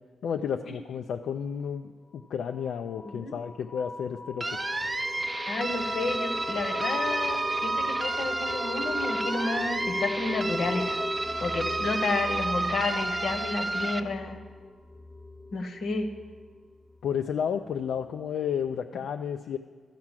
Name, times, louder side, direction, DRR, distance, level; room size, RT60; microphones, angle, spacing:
voice 1, 0.2-4.6 17.0-19.6, left 7 dB, 90° left, 7 dB, 0.3 m, -32 dB
sound 1, 2.5-16.9, left 2 dB, 5° left, 0.8 m, -38 dB
sound 2, 4.4-14.0, right 2 dB, 20° right, 0.4 m, -31 dB
voice 2, 5.5-11.0 11.4-14.4 15.5-16.1, left 3 dB, 70° left, 6 dB, 1.0 m, -31 dB
13.5 x 4.8 x 7.4 m, 1.5 s
cardioid pair, 100°, 0 cm